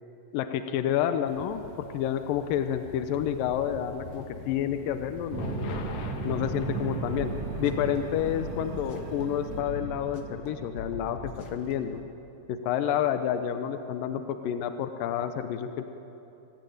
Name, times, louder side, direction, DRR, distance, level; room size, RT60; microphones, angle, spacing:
voice 1, 0.3-1.6 1.9-5.7 6.2-7.3 7.6-12.0 12.5-15.8, left 10 dB, 80° left, 8 dB, 2.6 m, -29 dB
sound 1, 1.3-9.6, left 4 dB, 60° left, 2.6 m, -43 dB
sound 2, 5.3-12.1, right 4 dB, 55° right, 2.3 m, -36 dB
sound 3, 7.0-8.0 8.3-9.2 9.5-10.5 10.8-11.7, left 4 dB, 45° left, 1.6 m, -41 dB
25.0 x 19.0 x 9.4 m, 2.9 s
omnidirectional pair, 3.9 m